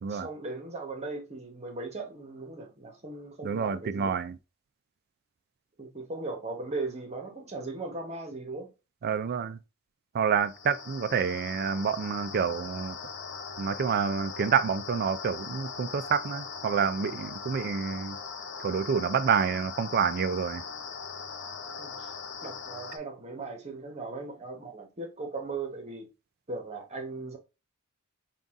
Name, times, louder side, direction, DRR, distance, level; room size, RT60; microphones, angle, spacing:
voice 1, 0.1-4.1 5.8-8.7 21.8-22.1 22.4-26.1 26.5-27.4, right 3 dB, 30° right, 1.0 m, -38 dB
voice 2, 3.4-4.4 9.0-9.6 10.1-12.9 13.6-18.2 18.6-20.6, right 6 dB, 45° right, 0.4 m, -28 dB
sound 1, 10.4-23.0, left 5 dB, 55° left, 0.6 m, -40 dB
4.0 x 2.4 x 3.5 m
head